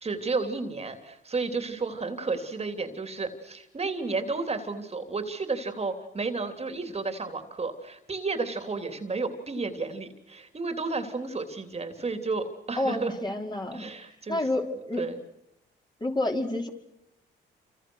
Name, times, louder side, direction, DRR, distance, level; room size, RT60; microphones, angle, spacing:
voice 1, 0.0-13.1 13.7-14.4 15.0-15.2, right 3 dB, 30° right, 7 dB, 3.3 m, -32 dB
voice 2, 12.8-13.9 14.3-15.0 16.0-16.7, left 1 dB, 20° left, 2 dB, 5.0 m, -29 dB
28.5 x 27.5 x 6.4 m, 0.80 s
cardioid pair, 90°, 20 cm